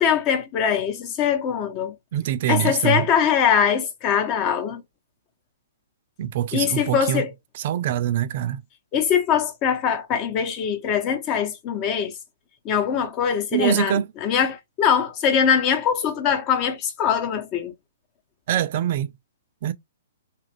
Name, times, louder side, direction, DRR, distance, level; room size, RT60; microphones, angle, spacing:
voice 1, 0.0-1.9 2.5-4.8 6.5-7.3 8.9-12.1 12.6-17.7, left 8 dB, 30° left, 0.8 m, -22 dB
voice 2, 2.1-3.1 6.2-7.2 7.6-8.6 13.5-14.1 18.5-19.1 19.6-19.7, right 11 dB, 50° right, 0.4 m, -24 dB
2.8 x 2.4 x 3.3 m
hypercardioid pair, 135°, 0 cm